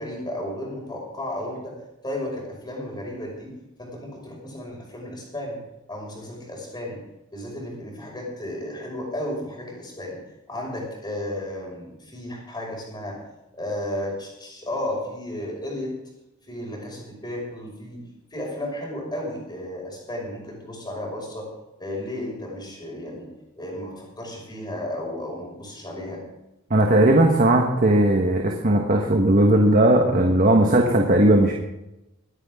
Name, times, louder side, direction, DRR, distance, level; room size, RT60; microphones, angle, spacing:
voice 1, 0.0-1.8 2.0-5.6 5.9-7.0 7.3-10.2 10.5-13.2 13.5-16.0 16.5-18.1 18.3-21.5 21.8-26.2, left 1 dB, 20° left, -2 dB, 5.6 m, -33 dB
voice 2, 26.7-31.5, right 1 dB, 40° right, 2 dB, 1.4 m, -17 dB
23.0 x 9.9 x 3.7 m, 0.91 s
head